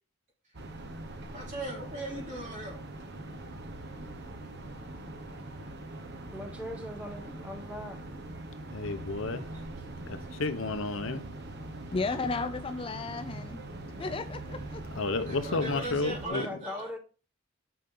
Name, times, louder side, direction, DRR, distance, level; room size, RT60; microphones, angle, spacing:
sound 1, 0.5-16.3, right 2 dB, 55° right, 1.1 m, -42 dB
voice 1, 1.3-2.8 8.8-9.8 14.0-14.3 15.2-16.9, right 1 dB, 35° right, 3.3 m, -40 dB
voice 2, 6.3-8.0 16.2-17.0, left 1 dB, 5° right, 1.4 m, -40 dB
voice 3, 8.7-9.5 10.1-11.2 15.0-16.4, left 3 dB, 70° left, 0.9 m, -31 dB
voice 4, 11.9-13.6 14.0-15.0, left 3 dB, 25° left, 0.4 m, -34 dB
9.5 x 5.2 x 3.8 m
head